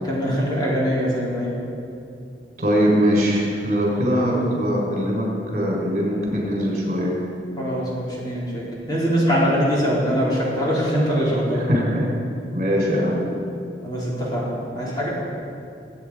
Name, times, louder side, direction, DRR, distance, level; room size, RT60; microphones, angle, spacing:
voice 1, 0.1-1.6 7.6-11.7 13.8-14.5 14.8-15.1, equal, 25° left, -7 dB, 4.0 m, -22 dB
voice 2, 2.6-5.3 5.5-7.1 11.5-12.1 12.5-13.2 14.8-14.9, equal, 45° right, -3 dB, 4.3 m, -21 dB
22.5 x 9.2 x 4.9 m, 2.6 s
head